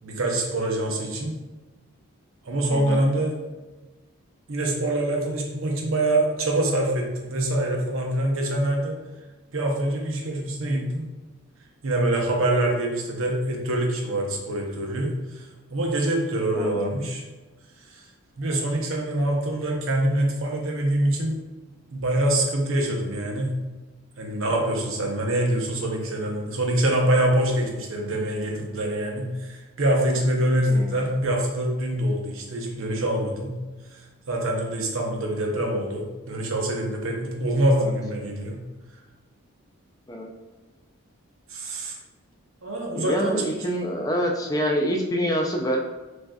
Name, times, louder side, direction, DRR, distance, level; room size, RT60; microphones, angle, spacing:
voice 1, 0.0-1.4 2.4-3.4 4.5-9.0 9.5-11.0 11.8-15.4 15.7-17.2 17.9-18.0 18.4-21.4 21.9-23.5 24.2-33.6 33.9-34.0 34.3-38.6 41.5-42.0 42.6-43.6, right 1 dB, 65° right, 0 dB, 0.7 m, -25 dB
voice 2, 2.7-3.0 16.5-16.9 30.6-31.1 37.7-37.9 40.1-40.3 43.0-45.8, equal, 15° left, 1 dB, 0.3 m, -26 dB
6.1 x 2.7 x 2.3 m, 1.2 s
head